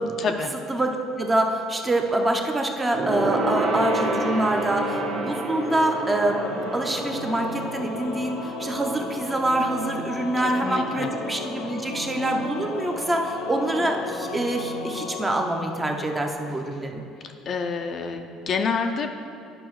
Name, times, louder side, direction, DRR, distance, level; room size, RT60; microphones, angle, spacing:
voice 1, 0.2-0.5 10.4-11.1 17.2-19.1, left 5 dB, 40° left, 5 dB, 0.4 m, -28 dB
voice 2, 0.7-17.0, right 1 dB, 15° right, 3 dB, 0.6 m, -25 dB
Gong, 2.9-12.7 13.0-13.3 13.6-13.7, right 2 dB, 60° right, 1.5 m, -31 dB
Singing / Musical instrument, 5.5-16.7, left 3 dB, 80° left, 0.6 m, -35 dB
11.0 x 5.5 x 3.1 m, 2.5 s
cardioid pair, 145°, 0 cm